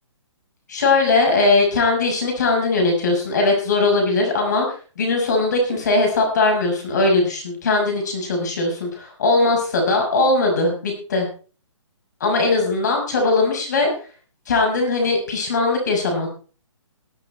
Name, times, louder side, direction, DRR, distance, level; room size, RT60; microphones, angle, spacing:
voice 1, 0.7-4.7 5.0-11.3 12.2-13.9 14.5-16.3, left 3 dB, 35° left, 2 dB, 6.0 m, -19 dB
20.0 x 8.5 x 4.4 m, 0.39 s
hypercardioid pair, 180°, 16 cm